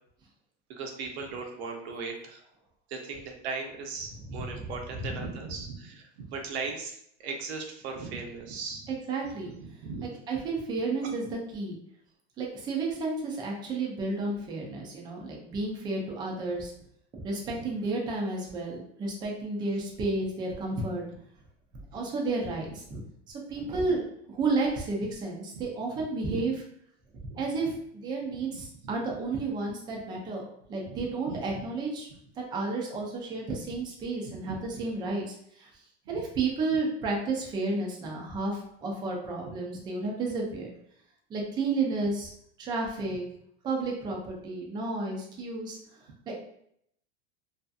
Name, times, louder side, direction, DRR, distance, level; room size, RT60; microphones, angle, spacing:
voice 1, 0.7-2.4 2.9-8.9 9.2-10.1 11.0-11.1 17.5-17.7 20.7-20.8 22.6-22.8 23.6-23.7 25.0-25.1 25.5-25.7 25.9-26.4 27.3-27.4 28.3-28.9 30.8-31.0 31.3-31.6 34.2-34.8 36.1-36.2 39.4-39.6 43.0-43.2, right 4 dB, 70° right, 3 dB, 0.7 m, -39 dB
voice 2, 4.0-5.3 8.9-9.5 10.0-11.8 12.4-16.7 17.2-21.0 21.9-23.0 23.5-26.6 27.3-30.4 30.7-32.1 32.4-35.7 36.1-40.7 41.3-42.3 42.6-43.2 43.6-45.8 46.3-46.4, right 3 dB, 15° right, -1 dB, 0.3 m, -32 dB
2.6 x 2.4 x 2.3 m, 0.70 s
supercardioid pair, 145°, 33 cm